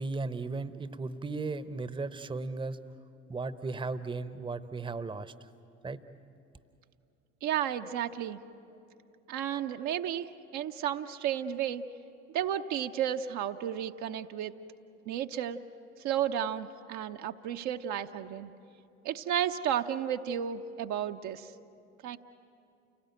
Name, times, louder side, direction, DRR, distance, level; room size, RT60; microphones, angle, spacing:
voice 1, 0.0-2.8 3.3-5.5 5.8-6.0, right 3 dB, 15° right, 13 dB, 0.9 m, -36 dB
voice 2, 7.4-8.4 9.3-11.8 12.3-14.5 15.1-15.6 16.0-18.5 19.0-21.5 22.0-22.2, right 10 dB, 50° right, 6 dB, 0.8 m, -32 dB
29.5 x 17.5 x 9.2 m, 2.6 s
figure-of-eight pair, 60°, 37 cm